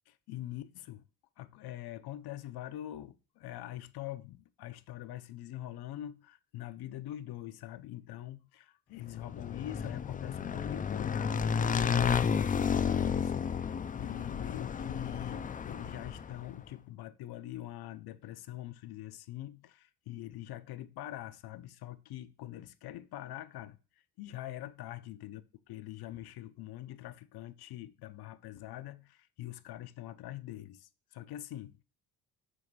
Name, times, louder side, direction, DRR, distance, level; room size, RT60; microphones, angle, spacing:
voice 1, 0.1-1.0 1.4-23.8 24.2-25.4 25.7-31.8, left 14 dB, 70° left, 0.7 m, -44 dB
Motorcycle / Engine, 9.2-16.5, left 7 dB, 20° left, 0.4 m, -32 dB
7.6 x 3.2 x 4.6 m
cardioid pair, 130°, 39 cm